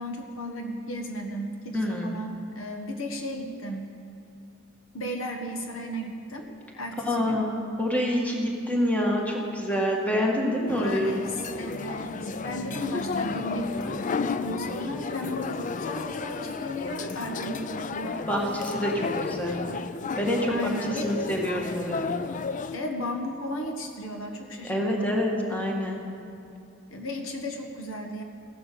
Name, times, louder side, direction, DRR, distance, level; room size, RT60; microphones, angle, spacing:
voice 1, 0.0-3.9 4.9-6.5 6.7-7.4 10.7-18.3 20.5-21.2 22.7-25.3 26.9-28.2, equal, 70° left, 3 dB, 1.4 m, -35 dB
voice 2, 1.7-2.1 7.1-11.2 18.3-19.6 20.2-22.2 24.6-26.0, left 1 dB, 5° left, -1 dB, 1.8 m, -27 dB
sound 1, 10.7-22.8, left 4 dB, 40° left, 0.5 m, -33 dB
16.0 x 11.5 x 6.9 m, 2.6 s
head